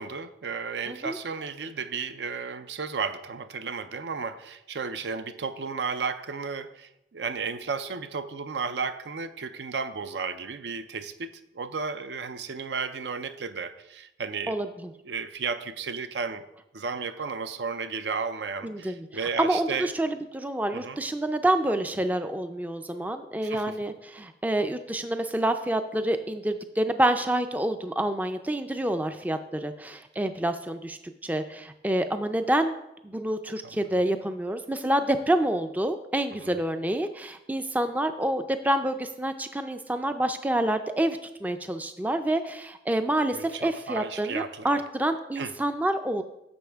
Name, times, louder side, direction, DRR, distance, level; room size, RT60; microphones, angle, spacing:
voice 1, 0.0-14.6 15.0-16.4 16.7-19.9 20.7-21.0 23.4-23.8 33.6-33.8 36.4-36.6 43.3-44.8 45.4-45.5, right 5 dB, 80° right, 11 dB, 0.5 m, -33 dB
voice 2, 0.9-1.2 14.5-14.9 18.6-19.1 19.4-32.7 33.0-46.2, right 1 dB, 10° right, 8 dB, 0.3 m, -27 dB
10.5 x 7.0 x 3.4 m, 0.86 s
head